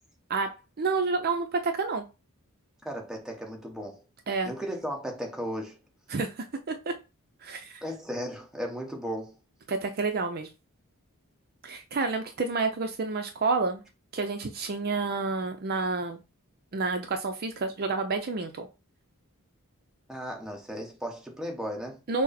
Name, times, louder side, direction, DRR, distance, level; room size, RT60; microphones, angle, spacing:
voice 1, 0.8-2.0 4.3-4.5 6.1-6.9 7.4-7.8 9.7-10.5 11.6-13.8 14.1-16.2 16.7-18.7 22.1-22.2, right 4 dB, 45° right, 0.5 m, -29 dB
voice 2, 2.8-4.0 4.5-5.8 7.8-9.4 20.1-22.0, equal, ahead, 1.0 m, -35 dB
6.1 x 2.1 x 4.1 m
head